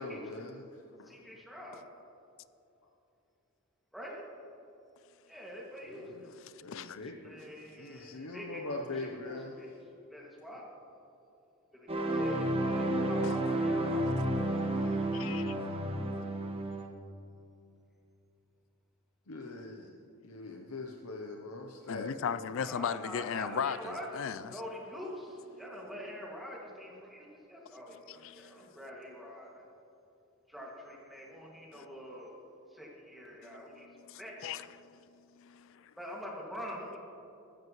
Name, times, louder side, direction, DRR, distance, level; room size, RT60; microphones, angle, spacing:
voice 1, 0.0-0.8 5.9-6.3 6.6-7.5 7.8-9.6 15.1-15.2 19.3-22.4, left 2 dB, 80° left, 0.8 m, -42 dB
voice 2, 1.0-1.9 3.9-4.2 5.3-6.3 7.2-9.7 10.1-10.7 11.7-15.0 15.3-15.7 22.6-24.2 24.5-29.7 30.5-32.4 32.7-34.3 36.0-37.0, equal, ahead, 2.1 m, -45 dB
voice 3, 6.4-7.0 13.2-13.4 15.1-15.5 21.9-24.6 28.1-28.6 31.7-31.8 33.4-35.0 35.3-35.9, left 7 dB, 60° left, 0.4 m, -38 dB
sound 1, 11.9-16.9, right 1 dB, 25° right, 0.9 m, -31 dB
15.0 x 13.0 x 3.1 m
head